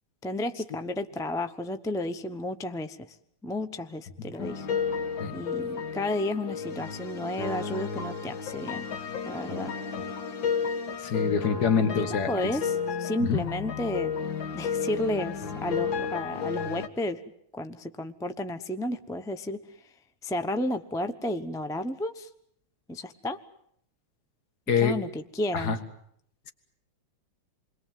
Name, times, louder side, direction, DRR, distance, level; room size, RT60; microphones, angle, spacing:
voice 1, 0.2-3.2 3.4-4.8 5.3-8.8 9.3-9.7 12.0-14.1 14.5-17.2 17.5-19.9 20.2-22.3 22.9-23.4 24.8-25.8, left 1 dB, 5° left, 9 dB, 0.3 m, -32 dB
sound 1, 4.4-16.9, left 6 dB, 65° left, 2.4 m, -32 dB
voice 2, 11.0-12.3 13.2-13.4 24.7-25.0 25.5-25.8, left 6 dB, 50° left, 8 dB, 2.3 m, -25 dB
28.5 x 22.0 x 7.6 m, 0.70 s
omnidirectional pair, 2.3 m